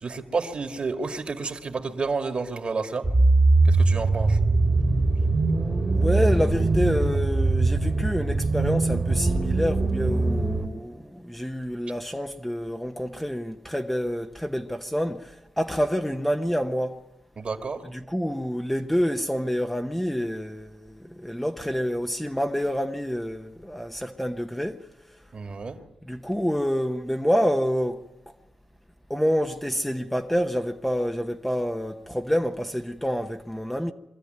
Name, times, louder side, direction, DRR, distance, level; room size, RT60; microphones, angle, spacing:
voice 1, 0.0-3.1 3.7-4.4 17.4-17.8 25.3-25.8, right 4 dB, 45° right, 2.3 m, -30 dB
sound 1, 3.0-10.7, right 3 dB, 30° right, 1.9 m, -21 dB
voice 2, 5.9-17.0 17.8-24.8 26.0-28.0 29.1-33.9, equal, 5° left, 0.9 m, -27 dB
24.0 x 13.5 x 9.3 m
cardioid pair, 80°, 3 cm